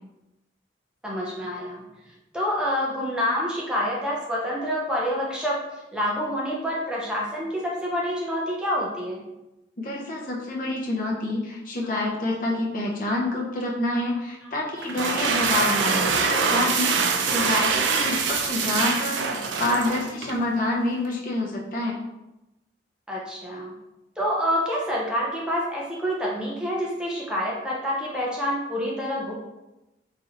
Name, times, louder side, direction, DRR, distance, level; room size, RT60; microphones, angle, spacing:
voice 1, 1.0-1.8 2.3-9.2 23.1-23.7 24.2-29.3, equal, 5° right, -4 dB, 0.5 m, -27 dB
voice 2, 9.8-16.9 17.2-22.0, left 2 dB, 45° left, -2 dB, 0.6 m, -27 dB
sound 1, 14.8-20.4, right 5 dB, 80° right, 0.4 m, -24 dB
4.1 x 2.9 x 2.5 m, 0.96 s
head